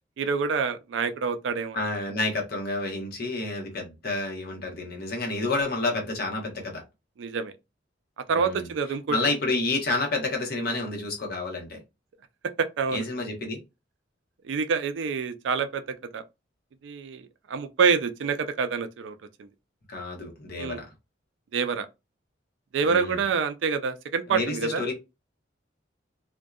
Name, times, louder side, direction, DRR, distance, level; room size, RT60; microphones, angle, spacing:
voice 1, 0.2-1.8 7.2-7.5 8.3-9.2 12.6-13.0 14.4-15.8 16.1-16.2 16.8-17.2 17.5-19.5 20.6-20.8 21.5-21.9 22.7-24.8, right 5 dB, 80° right, 0.4 m, -27 dB
voice 2, 1.7-6.8 8.3-8.7 9.1-11.8 12.9-13.6 19.9-20.9 22.8-23.2 24.3-24.9, left 2 dB, 55° left, 0.9 m, -29 dB
2.6 x 2.2 x 2.3 m
head